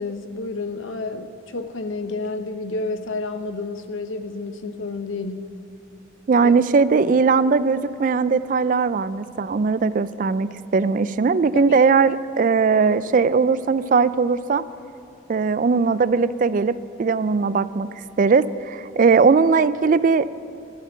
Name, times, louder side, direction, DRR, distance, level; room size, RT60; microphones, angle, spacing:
voice 1, 0.0-5.6 6.4-6.5 11.5-11.8, left 3 dB, 90° left, 8 dB, 0.9 m, -30 dB
voice 2, 6.3-14.6 15.3-17.9 18.2-20.3, right 5 dB, 45° right, 16 dB, 0.3 m, -19 dB
12.0 x 8.1 x 9.2 m, 2.9 s
head